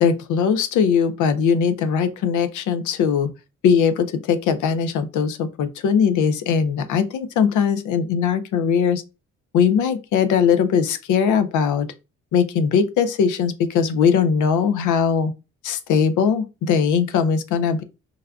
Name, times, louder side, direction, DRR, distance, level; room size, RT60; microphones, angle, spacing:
voice 1, 0.0-3.3 3.6-9.0 9.5-11.9 12.3-15.3 15.6-17.8, left 6 dB, 80° left, 0.6 m, -20 dB
4.8 x 2.2 x 2.3 m
cardioid pair, 90°, 30 cm